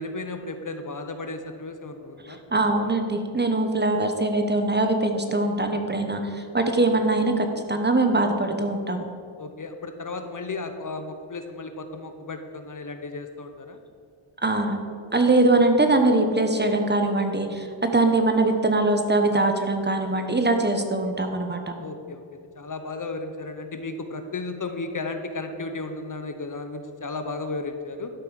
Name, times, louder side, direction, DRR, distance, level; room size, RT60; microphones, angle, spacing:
voice 1, 0.0-2.4 9.4-13.8 21.8-22.2 22.6-28.1, left 3 dB, 40° left, 7 dB, 0.9 m, -34 dB
voice 2, 2.2-9.0 14.4-14.8 15.1-21.7, right 2 dB, 20° right, 5 dB, 1.2 m, -22 dB
12.5 x 5.5 x 6.4 m, 2.5 s
cardioid pair, 70°, 49 cm